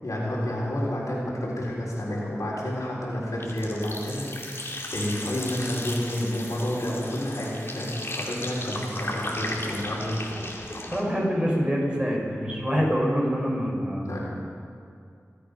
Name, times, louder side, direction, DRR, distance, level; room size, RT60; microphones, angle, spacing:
voice 1, 0.0-10.2 14.1-14.2, left 1 dB, 80° left, -5 dB, 3.9 m, -30 dB
sound 1, 3.4-11.0, left 1 dB, 45° left, 2.4 m, -35 dB
voice 2, 10.9-14.2, equal, 15° right, -2 dB, 4.7 m, -25 dB
25.5 x 8.5 x 5.2 m, 2.3 s
wide cardioid pair, 40°, 6 cm